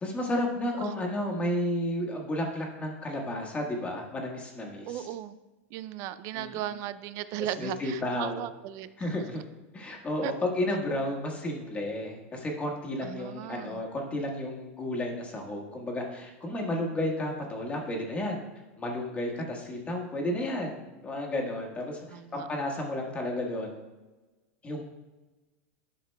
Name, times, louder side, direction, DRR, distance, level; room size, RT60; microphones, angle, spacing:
voice 1, 0.0-5.1 6.3-6.7 7.6-8.5 9.0-9.4 9.7-18.4 18.8-23.8 24.6-24.8, left 1 dB, 15° left, 0 dB, 1.4 m, -32 dB
voice 2, 4.9-5.4 5.7-8.9 10.2-10.3 13.0-13.8 22.1-22.5, right 12 dB, 45° right, 14 dB, 0.4 m, -36 dB
11.5 x 5.8 x 2.2 m, 1.2 s
supercardioid pair, 130°, 8 cm